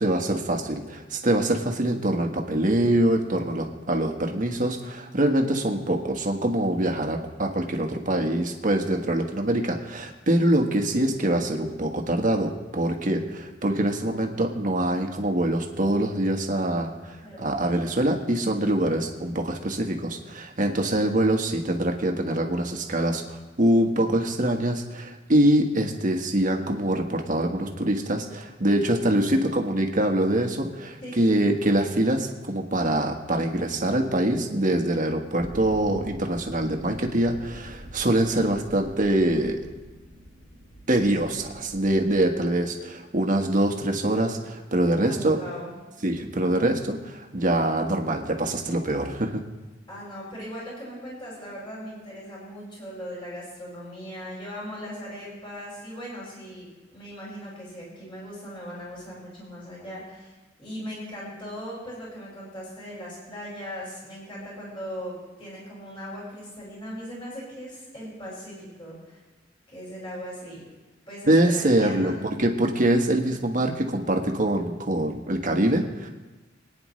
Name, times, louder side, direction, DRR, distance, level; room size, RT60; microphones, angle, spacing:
voice 1, 0.0-39.6 40.9-45.4 46.0-49.4 71.3-72.1 72.4-76.1, right 1 dB, 45° right, 3 dB, 1.4 m, -24 dB
voice 2, 17.2-17.5 31.0-31.3 45.0-45.7 49.9-60.3 60.6-65.1 65.4-69.2 69.7-70.7 71.1-72.2, equal, 25° left, -6 dB, 5.6 m, -39 dB
sound 1, 35.4-42.4, equal, 75° left, 3.7 m, -45 dB
25.5 x 9.6 x 3.2 m, 1.2 s
head